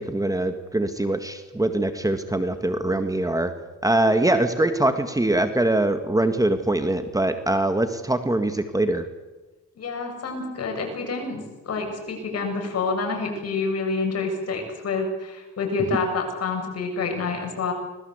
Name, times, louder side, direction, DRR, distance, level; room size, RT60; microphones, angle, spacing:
voice 1, 0.0-3.5 3.8-9.0, right 1 dB, 10° right, 8 dB, 1.8 m, -23 dB
voice 2, 9.8-17.7, left 4 dB, 55° left, 3 dB, 7.7 m, -28 dB
25.5 x 20.0 x 8.1 m, 1.2 s
cardioid pair, 90°, 30 cm